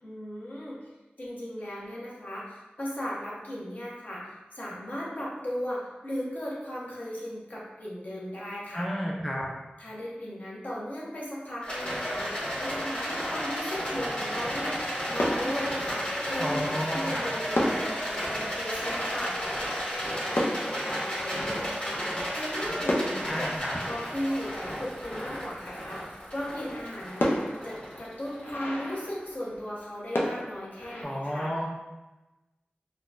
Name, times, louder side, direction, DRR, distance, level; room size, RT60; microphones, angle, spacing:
voice 1, 0.0-0.8 1.2-8.9 9.8-19.3 20.6-23.5 23.9-27.4 27.6-31.5, equal, 50° left, -6 dB, 0.9 m, -36 dB
voice 2, 8.7-9.5 16.4-17.3 23.3-23.8 31.0-31.7, equal, ahead, -3 dB, 0.4 m, -31 dB
Rattle, 11.6-29.0, equal, 35° left, 1.2 m, -33 dB
sound 1, 12.2-14.0 14.8-14.9 15.2-16.9 17.2-17.3 17.5-22.3 22.8-25.4 26.0-26.1 26.4-26.5 27.2-29.8 30.1-31.0, left 1 dB, 85° left, 0.5 m, -34 dB
3.8 x 2.2 x 2.4 m, 1.1 s
wide cardioid pair, 70°, 4 cm